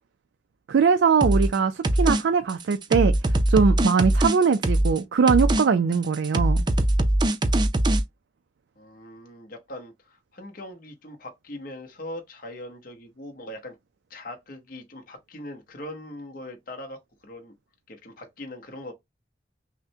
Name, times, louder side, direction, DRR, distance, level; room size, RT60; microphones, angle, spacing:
voice 1, 0.7-3.1 3.5-6.6, right 5 dB, 85° right, 0.4 m, -21 dB
sound 1, 1.2-1.6 1.8-2.2 2.5-5.0 5.3-5.6 5.9-8.0, right 1 dB, 25° right, 0.4 m, -21 dB
voice 2, 8.8-13.8 14.1-17.5 17.9-18.9, left 1 dB, 50° left, 0.9 m, -41 dB
5.8 x 2.1 x 2.7 m
head